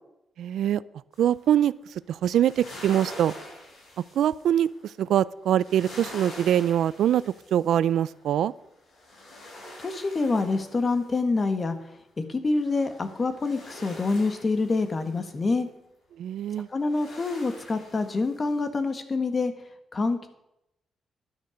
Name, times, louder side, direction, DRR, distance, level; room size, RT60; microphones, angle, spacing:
voice 1, 0.4-0.8 1.2-1.7 2.1-3.3 4.2-7.2 7.5-8.5 16.2-16.7, right 10 dB, 80° right, 19 dB, 0.4 m, -23 dB
sound 1, 1.1-1.5 2.1-4.9 5.5-8.3 8.7-11.7 12.6-15.3 16.6-18.7, left 1 dB, 60° left, 6.4 m, -45 dB
voice 2, 9.8-11.8 12.2-15.7 16.7-19.5 19.9-20.3, left 3 dB, 30° left, 9 dB, 1.6 m, -26 dB
12.5 x 11.0 x 5.1 m, 0.83 s
cardioid pair, 115°, 0 cm